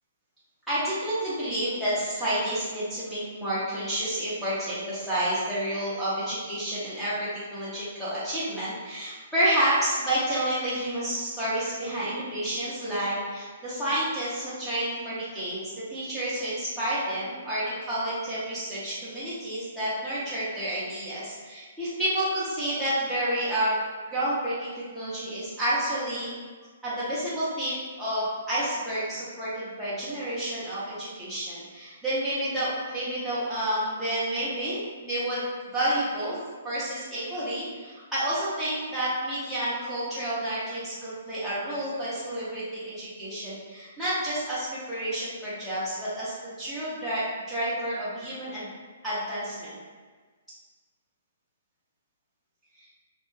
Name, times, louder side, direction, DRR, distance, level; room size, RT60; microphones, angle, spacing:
voice 1, 0.7-15.6 15.9-23.8 24.0-26.3 26.8-36.4 36.6-48.7 49.0-49.8 52.8-52.9, right 1 dB, ahead, -13 dB, 0.5 m, -30 dB
2.6 x 2.1 x 3.1 m, 1.4 s
hypercardioid pair, 175°, 0 cm